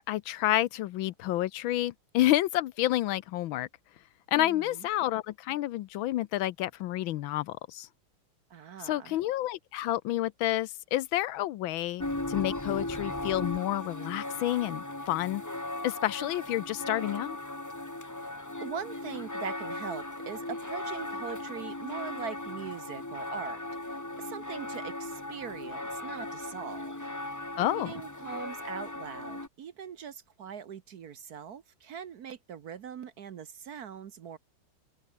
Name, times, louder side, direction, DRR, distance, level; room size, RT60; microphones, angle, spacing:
voice 1, 0.0-3.7 4.3-7.9 8.8-15.4 15.8-17.4 27.6-27.9, left 14 dB, 75° left, 1.4 m, -29 dB
voice 2, 4.3-4.9 8.5-9.2 18.3-26.9 27.6-34.4, right 8 dB, 55° right, 1.3 m, -42 dB
sound 1, 12.0-29.5, left 2 dB, 10° left, 1.2 m, -37 dB
open air
omnidirectional pair, 2.3 m